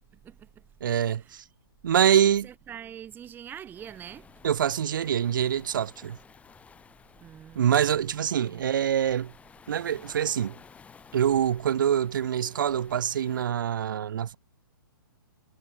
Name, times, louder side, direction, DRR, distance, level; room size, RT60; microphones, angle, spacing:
voice 1, 0.2-0.6 1.1-1.4 2.0-2.2 2.4-4.3 7.2-7.8 8.1-8.6, right 9 dB, 15° right, 1.7 m, -44 dB
voice 2, 0.8-1.4 1.8-2.5 4.4-6.2 7.6-9.3 9.7-10.6 11.1-14.4, right 9 dB, 60° right, 0.6 m, -25 dB
Waves surf, 3.7-13.5, left 6 dB, 10° left, 2.4 m, -53 dB
figure-of-eight pair, 125°, 12 cm